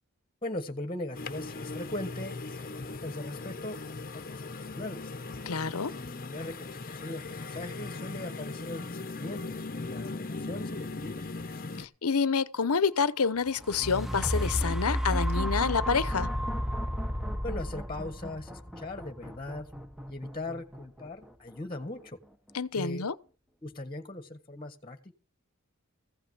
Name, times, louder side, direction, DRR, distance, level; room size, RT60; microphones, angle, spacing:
voice 1, 0.4-5.1 5.9-11.1 17.4-19.7 20.1-22.2 22.7-23.0 23.6-25.1, left 1 dB, 25° left, 1.5 m, -40 dB
sound 1, 1.1-11.9, left 3 dB, 40° left, 1.0 m, -39 dB
voice 2, 5.5-5.9 11.8-16.3 22.5-23.1, left 5 dB, 75° left, 0.9 m, -28 dB
sound 2, 13.4-21.5 22.0-22.1, equal, ahead, 1.1 m, -32 dB
15.5 x 5.8 x 8.0 m
head